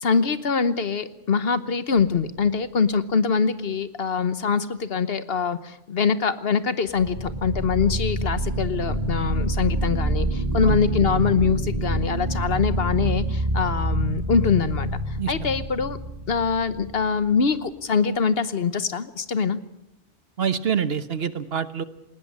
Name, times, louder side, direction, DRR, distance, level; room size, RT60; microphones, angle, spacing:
voice 1, 0.0-16.0 16.3-19.6, left 5 dB, 60° left, 13 dB, 1.2 m, -24 dB
sound 1, 2.0-2.5 6.9-17.1, right 1 dB, 35° right, 3.1 m, -27 dB
voice 2, 20.4-21.8, right 7 dB, 60° right, 13 dB, 1.2 m, -26 dB
20.0 x 19.5 x 8.6 m, 0.82 s
omnidirectional pair, 1.2 m